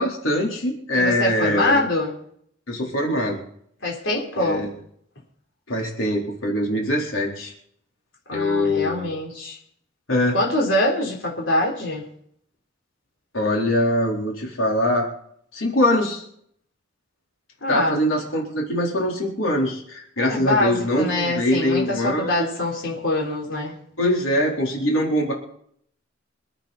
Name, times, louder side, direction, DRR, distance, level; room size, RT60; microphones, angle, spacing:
voice 1, 0.0-1.8 2.7-3.4 4.4-4.7 5.7-7.5 8.3-9.1 10.1-10.4 13.3-15.1 15.5-16.2 17.7-22.6 24.0-25.3, left 1 dB, 85° left, -1 dB, 4.1 m, -23 dB
voice 2, 0.9-2.2 3.8-4.6 8.3-9.6 10.3-12.0 17.6-18.0 20.2-23.7, left 1 dB, 70° left, -2 dB, 3.8 m, -24 dB
26.5 x 9.0 x 4.3 m, 0.67 s
head